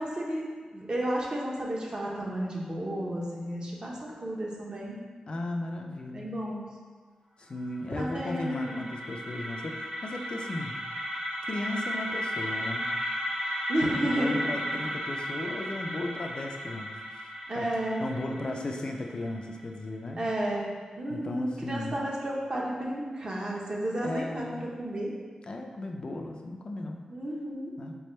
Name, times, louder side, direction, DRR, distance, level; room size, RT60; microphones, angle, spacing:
voice 1, 0.0-5.0 6.1-6.6 7.9-8.8 13.7-14.4 14.7-14.8 17.5-18.0 18.3-18.7 20.2-25.1 27.1-27.7, right 1 dB, 40° right, -3 dB, 0.8 m, -32 dB
voice 2, 5.3-6.3 7.4-10.8 11.5-12.9 13.9-16.9 17.6-17.7 18.0-20.2 21.1-22.0 24.0-24.7 25.4-27.1 27.8-27.9, left 2 dB, 45° left, 2 dB, 0.3 m, -36 dB
sound 1, 7.6-19.6, equal, 85° right, 0.9 m, -35 dB
3.4 x 3.3 x 4.2 m, 1.6 s
wide cardioid pair, 120°, 2 cm